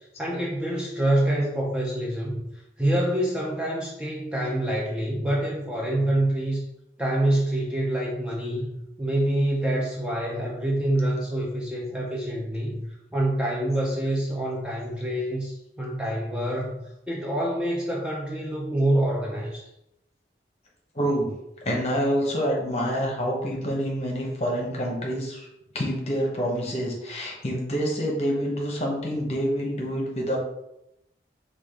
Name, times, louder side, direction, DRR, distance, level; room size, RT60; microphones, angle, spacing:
voice 1, 0.2-2.4 2.8-6.6 7.0-12.8 13.1-19.7, right 1 dB, 5° right, -4 dB, 0.5 m, -26 dB
voice 2, 20.9-21.3 21.6-25.5 25.7-30.4, equal, 35° left, -1 dB, 0.9 m, -27 dB
4.9 x 2.4 x 3.6 m, 0.85 s
head